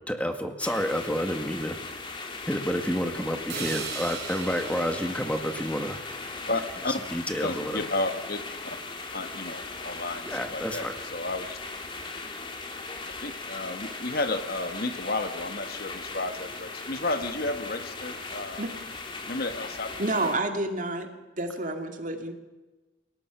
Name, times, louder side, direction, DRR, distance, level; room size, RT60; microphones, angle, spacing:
voice 1, 0.1-1.8 2.5-6.0 7.1-7.8 10.3-10.9, equal, 5° left, 6 dB, 1.9 m, -29 dB
sound 1, 0.6-20.4, left 3 dB, 25° left, 2.3 m, -38 dB
sound 2, 3.5-7.5, right 6 dB, 60° right, 4.9 m, -40 dB
voice 2, 6.5-7.0 7.4-8.8 9.1-11.6 13.2-18.6 19.3-19.9, left 2 dB, 55° left, 8 dB, 1.6 m, -32 dB
voice 3, 20.0-22.3, right 2 dB, 45° right, 5 dB, 2.4 m, -29 dB
29.0 x 18.0 x 6.1 m, 1.1 s
head